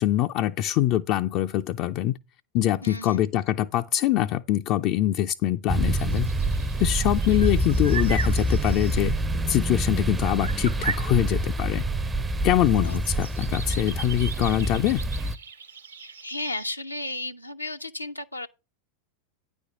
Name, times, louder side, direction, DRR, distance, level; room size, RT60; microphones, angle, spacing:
voice 1, 0.0-2.2 2.5-6.3 6.8-9.2 9.5-11.8 12.4-15.0, left 13 dB, 40° left, 0.4 m, -24 dB
voice 2, 2.8-3.3 12.8-13.0 16.0-18.5, left 2 dB, 85° left, 0.6 m, -34 dB
sound 1, 5.7-15.4, right 1 dB, 15° right, 0.5 m, -26 dB
sound 2, 5.8-10.0 10.3-16.7, right 6 dB, 75° right, 1.2 m, -38 dB
9.7 x 4.4 x 6.9 m
figure-of-eight pair, 90°, 0 cm